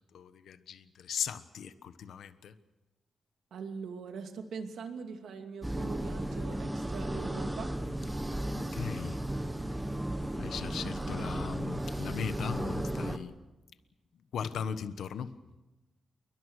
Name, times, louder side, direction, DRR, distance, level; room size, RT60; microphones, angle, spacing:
voice 1, 0.1-2.5 8.7-9.2 10.4-13.4 14.3-15.3, left 7 dB, 85° left, 12 dB, 1.2 m, -38 dB
voice 2, 3.5-8.1, right 5 dB, 90° right, 5 dB, 2.6 m, -42 dB
sound 1, 5.6-13.2, right 1 dB, 10° right, 1.2 m, -35 dB
28.0 x 22.5 x 6.4 m, 1.1 s
wide cardioid pair, 170°, 0 cm